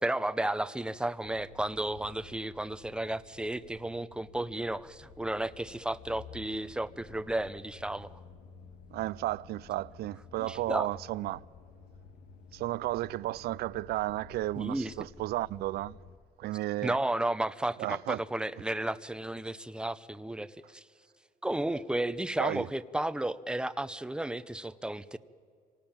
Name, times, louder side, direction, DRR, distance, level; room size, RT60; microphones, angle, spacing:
voice 1, 0.0-8.1 10.4-10.9 14.6-14.9 16.8-20.8 21.4-25.2, right 1 dB, 5° right, 0.7 m, -33 dB
sound 1, 1.2-16.2, left 5 dB, 85° left, 1.9 m, -53 dB
voice 2, 8.9-11.4 12.5-16.0 16.4-17.0 17.8-18.2 22.4-22.7, right 16 dB, 80° right, 0.5 m, -33 dB
26.5 x 18.5 x 8.9 m
cardioid pair, 110°, 16 cm